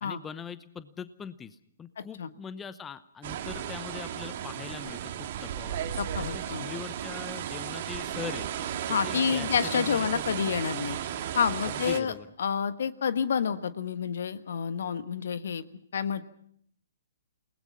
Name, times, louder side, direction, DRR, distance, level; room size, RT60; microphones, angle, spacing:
voice 1, 0.0-5.8 6.2-8.5 9.0-10.6 11.7-12.3, left 7 dB, 15° left, 14 dB, 0.8 m, -42 dB
voice 2, 2.0-2.3 6.0-6.7 8.9-11.0 11.3-12.1 12.4-15.7 15.9-16.2, left 7 dB, 65° left, 12 dB, 1.3 m, -29 dB
sound 1, 3.2-12.0, right 10 dB, 50° right, 2.1 m, -34 dB
28.5 x 19.5 x 5.6 m, 0.67 s
figure-of-eight pair, 125°, 0 cm